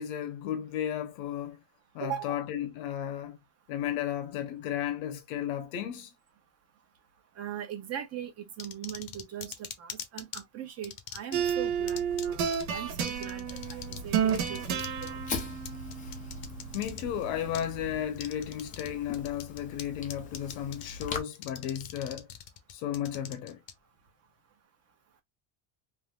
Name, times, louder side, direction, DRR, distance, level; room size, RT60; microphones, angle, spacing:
voice 1, 0.0-1.6 1.9-3.4 3.7-6.1 16.7-22.3 22.7-23.6, left 10 dB, 75° left, 0.9 m, -34 dB
voice 2, 2.0-2.5 7.4-15.2, right 10 dB, 30° right, 0.7 m, -40 dB
sound 1, 8.6-10.4 10.8-11.5 11.9-12.3 12.5-12.6 13.0-14.0 14.3-17.0 17.5-17.7 18.2-18.9 19.1-19.8 20.1-21.0 21.4-23.7, left 9 dB, 50° left, 0.7 m, -41 dB
sound 2, 11.3-18.0, right 7 dB, 75° right, 1.3 m, -32 dB
Fire, 13.5-21.2, left 5 dB, 20° left, 0.3 m, -42 dB
3.4 x 2.6 x 2.2 m
cardioid pair, 150°, 50 cm